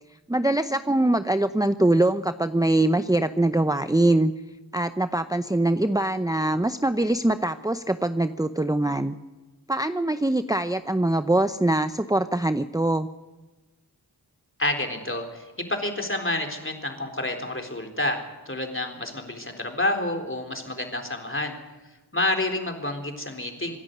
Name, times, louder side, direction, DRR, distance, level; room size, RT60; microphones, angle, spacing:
voice 1, 0.3-4.3 4.7-9.1 9.7-13.1, right 1 dB, 10° right, 9 dB, 0.7 m, -23 dB
voice 2, 14.6-21.6 22.1-23.8, left 1 dB, 30° left, 4 dB, 3.9 m, -29 dB
26.0 x 11.0 x 9.4 m, 1.2 s
wide cardioid pair, 45°, 39 cm